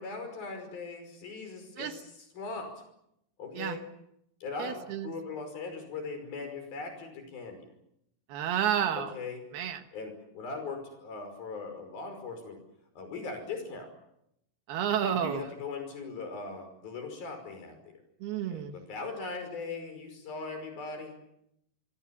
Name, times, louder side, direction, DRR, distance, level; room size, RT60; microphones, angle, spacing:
voice 1, 0.0-2.7 3.4-3.9 4.4-7.7 8.9-9.4 9.9-12.6 13.0-13.9 15.1-17.8 18.5-21.2, left 4 dB, 60° left, 6 dB, 7.2 m, -39 dB
voice 2, 4.6-5.1 8.3-9.2 9.5-9.8 14.7-15.4 18.2-18.8, right 9 dB, 70° right, 8 dB, 3.2 m, -30 dB
25.0 x 25.0 x 7.3 m, 0.79 s
omnidirectional pair, 4.8 m